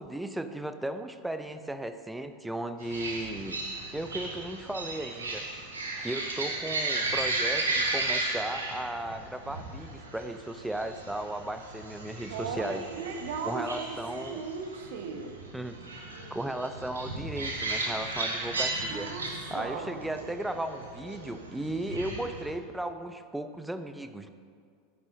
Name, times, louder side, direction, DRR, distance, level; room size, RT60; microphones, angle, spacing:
voice 1, 0.0-3.6 3.9-5.4 6.0-12.9 13.4-14.4 15.5-15.8 16.3-19.1 19.5-24.3, right 1 dB, 5° right, 9 dB, 0.6 m, -35 dB
sound 1, 2.8-22.5, right 2 dB, 80° right, 1.3 m, -35 dB
voice 2, 12.3-15.3 18.9-19.3 19.5-20.0, right 5 dB, 60° right, 4 dB, 1.1 m, -37 dB
13.5 x 8.6 x 2.7 m, 2.1 s
figure-of-eight pair, 85°, 0 cm